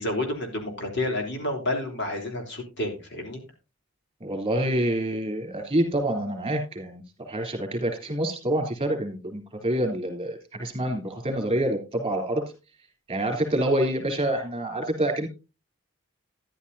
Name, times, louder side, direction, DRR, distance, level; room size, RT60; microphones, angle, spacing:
voice 1, 0.0-3.4, left 1 dB, 55° left, 2 dB, 3.5 m, -30 dB
voice 2, 4.2-12.4 13.1-15.3, right 1 dB, 25° right, 3 dB, 3.3 m, -27 dB
13.0 x 11.5 x 2.7 m, 0.29 s
head